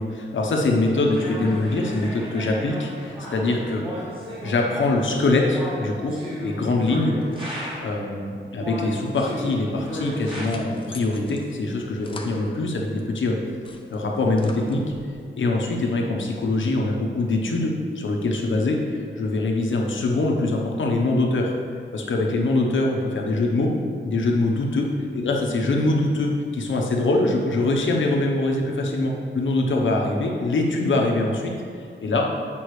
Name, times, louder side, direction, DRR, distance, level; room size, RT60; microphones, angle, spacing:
voice 1, 0.0-3.8 4.4-7.2 7.8-13.4 13.9-14.8 15.4-21.5 21.9-23.7 24.0-24.9 25.1-31.5 32.0-32.3, left 2 dB, 70° left, 0 dB, 1.0 m, -23 dB
sound 1, 1.1-8.1 8.6-10.5, equal, 25° right, 1.6 m, -34 dB
sound 2, 10.3-13.1 13.5-15.2, left 3 dB, 25° left, 0.5 m, -45 dB
8.6 x 5.3 x 3.2 m, 2.3 s
wide cardioid pair, 155°, 20 cm